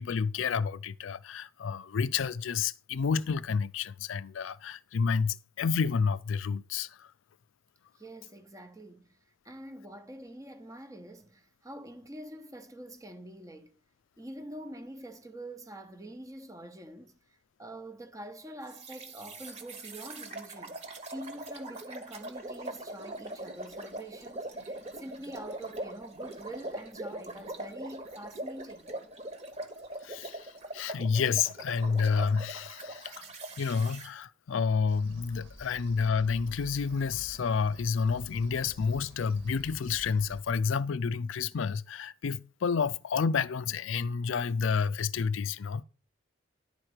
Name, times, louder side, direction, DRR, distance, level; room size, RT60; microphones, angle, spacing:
voice 1, 0.0-7.1 30.0-33.3 33.6-45.8, left 5 dB, 75° left, 0.4 m, -30 dB
voice 2, 8.0-9.2 9.4-13.7 14.2-28.9, right 1 dB, 15° right, 0.9 m, -45 dB
sound 1, 18.7-34.1, right 1 dB, 35° right, 1.4 m, -42 dB
sound 2, 34.9-40.4, equal, 70° right, 2.4 m, -49 dB
11.0 x 4.4 x 6.5 m
head